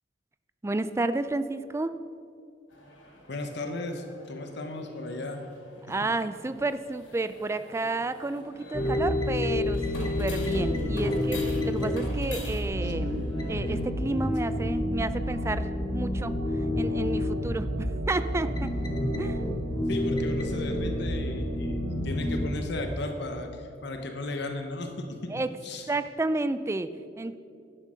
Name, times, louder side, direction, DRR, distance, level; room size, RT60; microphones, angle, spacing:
voice 1, 0.6-1.9 5.9-16.3 16.8-18.7 19.2-19.4 25.3-25.6 25.9-27.4, right 2 dB, 15° right, 12 dB, 0.3 m, -31 dB
sound 1, 2.7-13.8, left 2 dB, 85° left, 2.5 m, -47 dB
voice 2, 3.3-5.4 6.0-6.1 12.8-12.9 19.9-25.2 25.6-25.8, left 2 dB, 65° left, 5 dB, 1.0 m, -35 dB
sound 2, 8.7-22.7, left 1 dB, 25° left, 0.9 m, -29 dB
Organ, 10.5-22.6, right 3 dB, 70° right, 0.6 m, -41 dB
11.5 x 6.6 x 6.3 m, 2.4 s
head